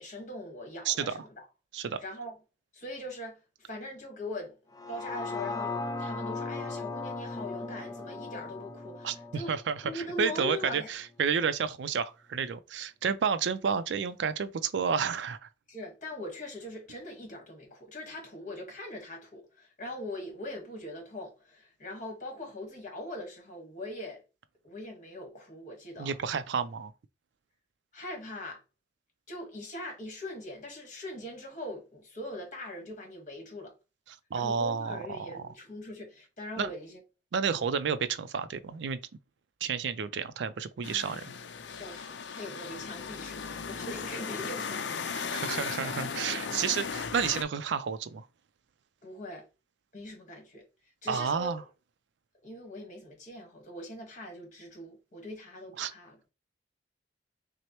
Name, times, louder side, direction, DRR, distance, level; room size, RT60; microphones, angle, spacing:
voice 1, 0.0-1.4 2.0-2.4 2.7-4.6 4.9-5.7 6.0-9.5 9.8-10.9 15.7-24.2 24.6-26.2 27.9-28.6 29.3-33.7 34.3-37.0 37.5-37.7 41.7-44.9 49.0-49.4 49.9-50.6 51.0-51.6 52.4-56.2, left 1 dB, 45° left, 1.4 m, -41 dB
sound 1, 4.7-10.9 11.3-11.4, left 3 dB, 20° left, 0.5 m, -38 dB
voice 2, 9.0-15.4 26.0-26.9 34.3-35.5 36.6-36.7 37.3-39.0 39.6-41.3 45.1-48.2 51.1-51.6 55.8-55.9, right 6 dB, 80° right, 0.4 m, -31 dB
sound 2, 40.8-47.4, left 6 dB, 80° left, 0.5 m, -37 dB
6.1 x 2.1 x 3.0 m
head